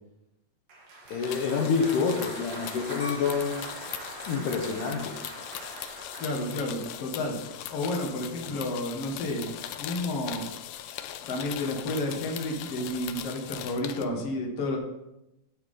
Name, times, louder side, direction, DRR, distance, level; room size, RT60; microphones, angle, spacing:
Applause, 0.7-6.7, right 2 dB, 75° right, 3.6 m, -42 dB
sound 1, 1.1-14.0, left 11 dB, 90° left, 2.4 m, -40 dB
voice 1, 1.1-3.7 4.3-5.1, left 5 dB, 75° left, 0 dB, 2.3 m, -27 dB
sound 2, 3.0-5.9 6.4-6.9, left 2 dB, 30° left, 2.0 m, -43 dB
voice 2, 6.2-7.4 7.7-9.5 9.8-10.5 11.3-14.8, left 1 dB, 50° left, 0 dB, 2.3 m, -31 dB
12.0 x 7.7 x 3.8 m, 0.92 s
omnidirectional pair, 4.1 m